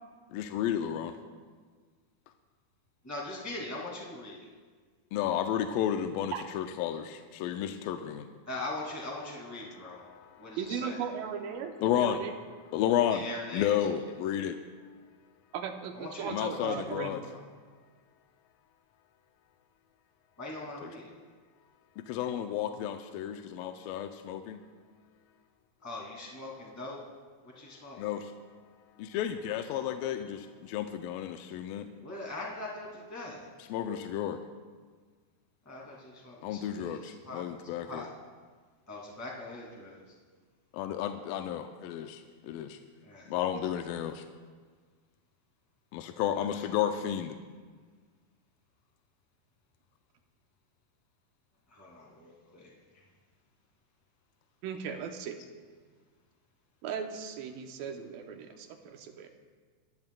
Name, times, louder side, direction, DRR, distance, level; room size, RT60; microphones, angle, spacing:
voice 1, 0.3-1.1 5.1-8.3 9.8-10.6 11.8-12.2 12.7-13.2 13.5-14.6 16.3-17.2 20.8-20.9 22.0-24.6 28.0-28.3 29.0-31.9 33.7-34.4 36.4-38.1 40.7-42.8 43.3-44.2 45.9-47.4, left 10 dB, 85° left, 6 dB, 2.3 m, -32 dB
voice 2, 3.0-4.4 8.4-10.0 10.4-11.0 13.1-13.7 15.9-17.4 20.4-21.1 25.8-27.0 27.4-28.0 32.0-33.5 35.6-38.1 38.9-40.0 43.0-43.3 51.7-52.7, left 2 dB, 5° left, -4 dB, 1.7 m, -41 dB
voice 3, 10.6-12.3 15.5-17.2 54.6-55.4 56.8-59.3, right 7 dB, 85° right, 5 dB, 2.6 m, -37 dB
26.0 x 10.5 x 2.3 m, 1.5 s
omnidirectional pair, 4.1 m